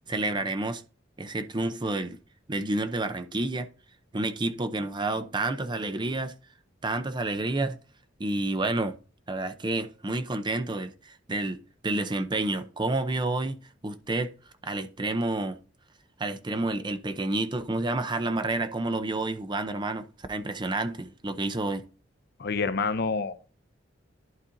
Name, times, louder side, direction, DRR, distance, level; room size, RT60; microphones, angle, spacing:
voice 1, 0.1-0.8 1.2-2.2 2.5-3.7 4.1-6.3 6.8-7.8 8.2-8.9 9.3-13.6 13.8-14.3 14.6-15.6 16.2-21.8, right 2 dB, 25° right, 0.6 m, -29 dB
voice 2, 22.4-23.4, left 4 dB, 55° left, 0.6 m, -28 dB
11.5 x 4.3 x 3.9 m
head